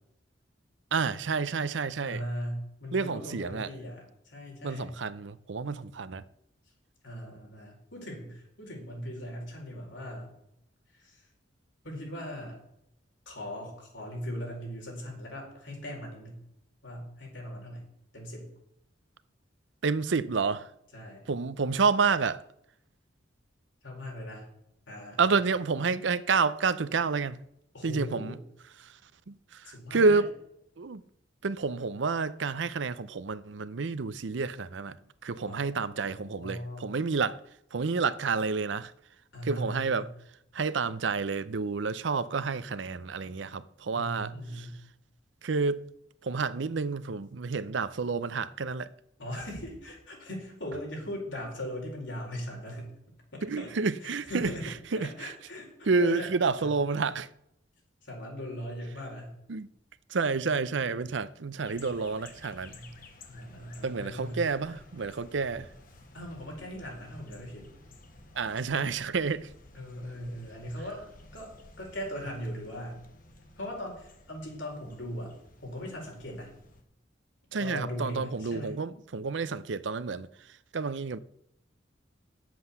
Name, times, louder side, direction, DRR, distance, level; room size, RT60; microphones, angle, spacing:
voice 1, 0.9-2.2 2.9-3.7 4.6-6.2 19.8-20.7 21.3-22.4 25.2-27.4 27.8-28.4 28.8-29.0 29.3-30.3 30.8-31.0 31.4-35.0 35.2-37.4 37.7-38.9 39.4-40.1 40.5-44.7 45.4-45.8 46.2-48.9 53.4-54.5 54.9-55.3 55.9-57.3 59.5-59.7 60.1-62.8 63.8-65.7 68.3-69.5 77.5-80.3 80.7-81.2, right 4 dB, 70° right, 0.6 m, -29 dB
voice 2, 2.0-5.0 7.0-10.3 10.9-11.3 11.8-12.6 13.3-16.4 16.8-17.8 18.1-18.5 20.9-21.2 23.8-24.4 24.9-25.3 27.7-28.4 29.6-30.2 35.4-37.0 39.3-40.1 43.9-44.8 49.2-52.9 53.3-53.7 54.0-56.3 56.6-56.7 58.0-59.3 62.7-62.9 63.2-64.4 66.1-67.7 69.7-71.0 71.3-73.0 73.6-75.3 75.6-76.5 77.6-78.7, equal, 80° left, 4.5 m, -39 dB
sound 1, 61.6-76.8, left 2 dB, 45° left, 1.5 m, -54 dB
9.7 x 7.7 x 6.9 m
head